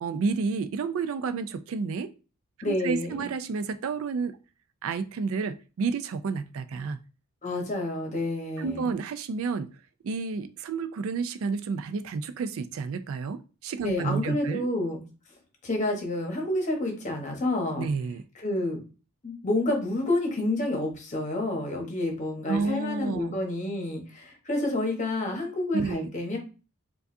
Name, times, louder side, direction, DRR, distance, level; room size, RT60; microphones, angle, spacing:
voice 1, 0.0-2.1 2.6-4.4 4.8-7.0 8.6-9.7 10.0-14.7 17.8-18.2 22.5-23.4 25.7-26.1, right 4 dB, 65° right, 0.3 m, -30 dB
voice 2, 2.6-3.3 7.4-8.9 13.8-15.0 15.6-17.9 18.3-18.8 19.2-26.4, left 2 dB, 35° left, 1.0 m, -29 dB
4.7 x 2.4 x 2.6 m
head